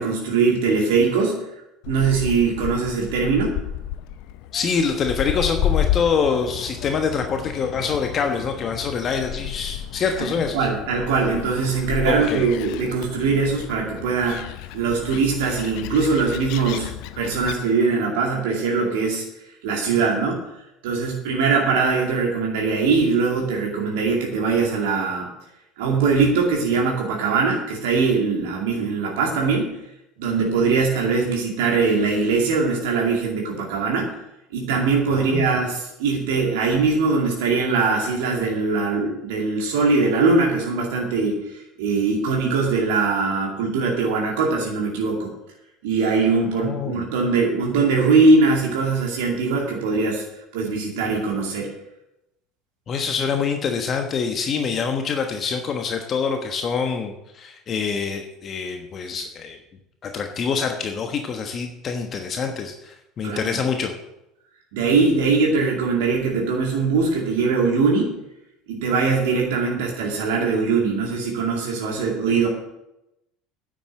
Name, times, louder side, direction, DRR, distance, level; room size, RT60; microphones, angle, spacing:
voice 1, 0.0-1.4 1.8-3.6 10.2-10.3 10.5-14.5 14.7-19.2 19.6-20.4 20.8-25.3 25.8-29.8 30.2-34.1 34.5-45.3 45.8-50.2 50.5-51.7 63.2-63.6 64.7-68.1 68.7-72.5, right 4 dB, 65° right, -1 dB, 2.4 m, -21 dB
Gull seagull, 1.8-17.6, left 11 dB, 60° left, 0.8 m, -31 dB
voice 2, 4.5-10.7 12.0-12.4 35.1-35.5 46.5-47.0 52.9-59.6 60.0-63.9, left 5 dB, 40° left, 5 dB, 1.2 m, -25 dB
10.0 x 7.7 x 7.7 m, 0.88 s
figure-of-eight pair, 65°, 0 cm